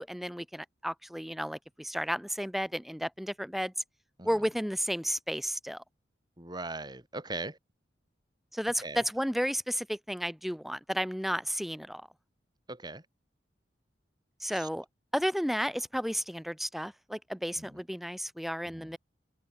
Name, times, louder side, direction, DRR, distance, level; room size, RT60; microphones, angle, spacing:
voice 1, 0.0-3.7 4.2-5.8 8.5-12.1 14.4-14.8 15.1-19.0, equal, ahead, 5.0 m, -33 dB
voice 2, 6.4-7.6 8.8-9.0 12.7-13.0 14.6-14.7 18.7-18.9, right 2 dB, 25° right, 4.8 m, -39 dB
head